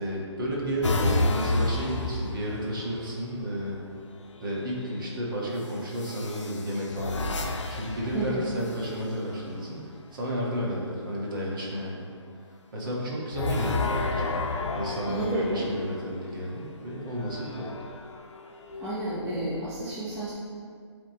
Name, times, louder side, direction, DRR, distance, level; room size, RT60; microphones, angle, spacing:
voice 1, 0.0-3.8 4.4-9.8 10.1-12.1 12.7-14.3 14.7-17.7, equal, 45° right, -4 dB, 1.6 m, -32 dB
sound 1, 0.8-3.1 4.4-4.8 5.9-9.4 13.3-16.3 17.0-18.9, left 2 dB, 80° left, 0.8 m, -31 dB
voice 2, 8.1-8.4 15.1-15.7 18.8-20.3, right 1 dB, 20° right, -10 dB, 1.1 m, -31 dB
10.5 x 3.7 x 3.0 m, 2.1 s
hypercardioid pair, 160°, 15 cm